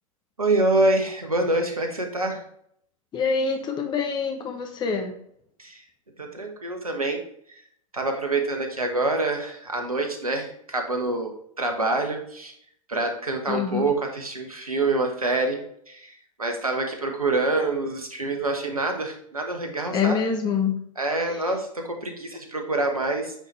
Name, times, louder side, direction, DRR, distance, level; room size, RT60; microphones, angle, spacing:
voice 1, 0.4-2.4 5.6-5.8 6.2-7.2 7.5-7.6 7.9-11.3 11.6-12.5 12.9-20.2 21.0-23.3, right 2 dB, 90° right, 3 dB, 1.3 m, -26 dB
voice 2, 3.1-5.2 13.5-13.9 19.9-20.8 21.3-21.5, left 6 dB, 25° left, 5 dB, 1.0 m, -26 dB
8.9 x 4.1 x 3.3 m, 0.68 s
figure-of-eight pair, 95°, 18 cm